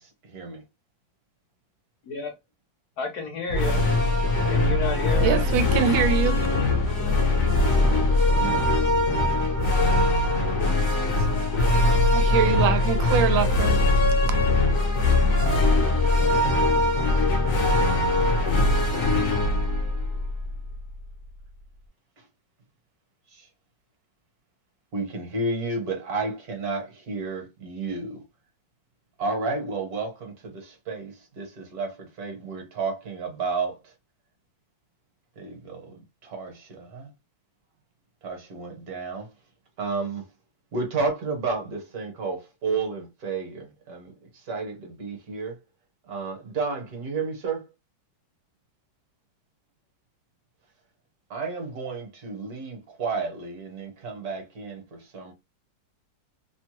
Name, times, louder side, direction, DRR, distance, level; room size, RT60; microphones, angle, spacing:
voice 1, 0.0-0.6 7.8-7.9 8.3-8.7 10.0-10.2 11.0-11.1 23.3-23.5 24.9-28.2 29.2-33.8 35.4-37.1 38.2-39.3 39.8-40.2 40.7-45.6 46.1-47.6 51.3-55.3, right 4 dB, 60° right, 1.4 m, -32 dB
voice 2, 3.0-3.8 4.5-5.4, left 4 dB, 65° left, 1.1 m, -30 dB
sound 1, 3.5-20.9, left 2 dB, 50° left, 1.0 m, -21 dB
voice 3, 5.2-6.4 10.1-10.2 12.1-13.8, right 7 dB, 85° right, 1.3 m, -24 dB
3.1 x 2.2 x 2.9 m
omnidirectional pair, 2.0 m